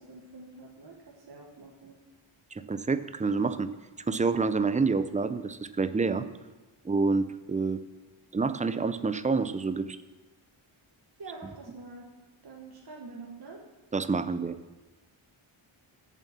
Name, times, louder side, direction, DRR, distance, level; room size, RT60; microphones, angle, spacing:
voice 1, 0.0-2.0 11.2-12.1 12.4-13.6, right 3 dB, 50° right, -2 dB, 1.2 m, -46 dB
voice 2, 2.5-3.7 4.1-6.2 6.8-7.8 8.3-10.0 13.9-14.5, right 4 dB, 15° right, 12 dB, 0.3 m, -28 dB
8.3 x 7.2 x 7.2 m, 1.2 s
wide cardioid pair, 135°, 50 cm